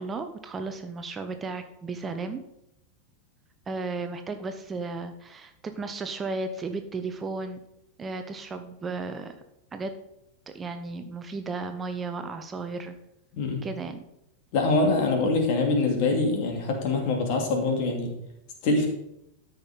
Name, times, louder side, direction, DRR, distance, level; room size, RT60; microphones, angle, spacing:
voice 1, 0.0-2.4 3.7-7.6 8.0-9.4 9.7-9.9 10.5-12.9 13.6-14.0, right 3 dB, 20° right, 7 dB, 0.9 m, -34 dB
voice 2, 14.5-18.1 18.6-18.9, left 3 dB, 45° left, 3 dB, 2.6 m, -24 dB
13.0 x 5.9 x 5.3 m, 0.83 s
figure-of-eight pair, 90°, 0 cm